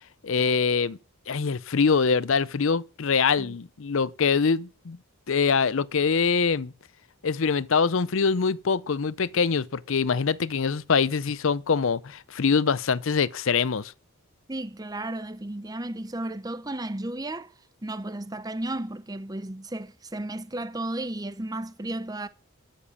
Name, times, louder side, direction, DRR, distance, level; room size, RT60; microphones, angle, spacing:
voice 1, 0.2-1.0 1.3-5.0 5.3-6.7 7.2-13.9, left 5 dB, 60° left, 0.6 m, -24 dB
voice 2, 14.5-17.5 17.8-22.3, right 1 dB, 15° right, 0.7 m, -34 dB
12.5 x 7.3 x 7.1 m
head